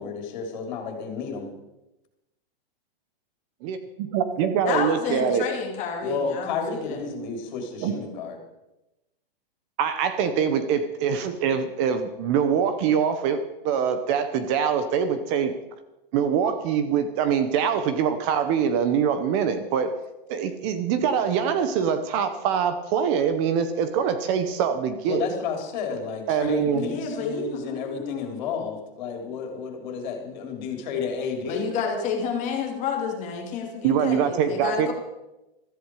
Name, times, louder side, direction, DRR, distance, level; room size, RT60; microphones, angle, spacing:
voice 1, 0.0-1.5 6.0-8.4 25.1-31.8, left 5 dB, 50° left, 4 dB, 3.8 m, -31 dB
voice 2, 4.1-5.5 7.8-7.9 9.8-15.5 16.1-19.9 20.3-25.2 26.3-26.8 33.8-34.9, right 7 dB, 30° right, 10 dB, 1.0 m, -24 dB
voice 3, 4.7-7.0 26.7-28.3 31.5-34.9, left 6 dB, 25° left, 2 dB, 2.6 m, -30 dB
15.0 x 14.0 x 4.9 m, 0.97 s
hypercardioid pair, 160°, 29 cm